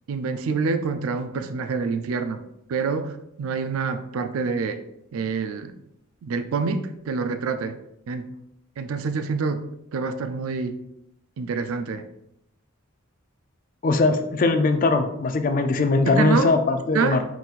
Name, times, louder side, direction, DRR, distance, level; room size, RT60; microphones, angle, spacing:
voice 1, 0.1-2.4 2.7-4.8 5.1-5.7 6.2-7.8 8.1-8.3 8.8-9.6 9.9-10.8 11.4-12.1 16.0-16.5 16.9-17.3, right 5 dB, 80° right, 10 dB, 0.4 m, -26 dB
voice 2, 13.8-17.2, left 3 dB, 40° left, 7 dB, 0.3 m, -21 dB
4.0 x 3.9 x 2.4 m, 0.81 s
head